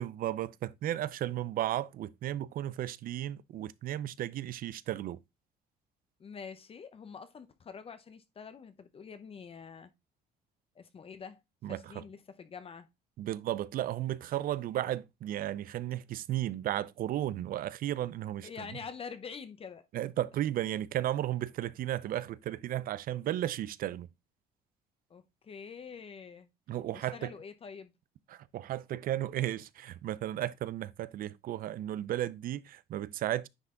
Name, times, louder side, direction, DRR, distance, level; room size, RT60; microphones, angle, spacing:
voice 1, 0.0-5.2 11.6-12.0 13.2-18.7 19.9-24.1 26.7-27.3 28.3-33.5, right 13 dB, 60° right, 0.5 m, -34 dB
voice 2, 6.2-9.9 10.7-11.4 11.7-12.9 18.4-19.9 25.1-26.5 26.9-27.9, left 6 dB, 35° left, 0.7 m, -46 dB
9.8 x 3.4 x 3.7 m
cardioid pair, 110°, 17 cm